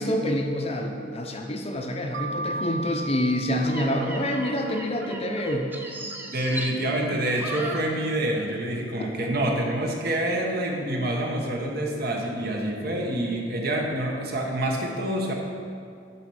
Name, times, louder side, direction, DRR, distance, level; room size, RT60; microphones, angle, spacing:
voice 1, 0.0-5.7 9.0-9.1, equal, 30° left, 3 dB, 0.7 m, -27 dB
Mallet percussion, 2.1-4.9, right 1 dB, 85° right, 0.7 m, -35 dB
sound 1, 3.5-8.5 8.7-9.0, right 1 dB, 10° right, 0.6 m, -37 dB
voice 2, 6.3-15.3, right 1 dB, 55° right, 1 dB, 1.1 m, -27 dB
9.8 x 4.3 x 6.2 m, 2.3 s
head